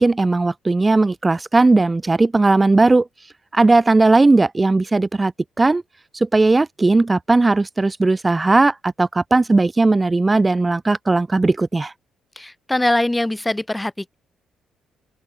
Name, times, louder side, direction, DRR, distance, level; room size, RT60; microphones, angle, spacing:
voice 1, 0.0-3.1 3.5-5.3 5.6-5.8 6.1-11.9, right 3 dB, 20° right, 2.5 m, -17 dB
voice 2, 12.4-14.1, left 1 dB, 10° left, 6.1 m, -22 dB
open air
cardioid pair, 90°, 0 cm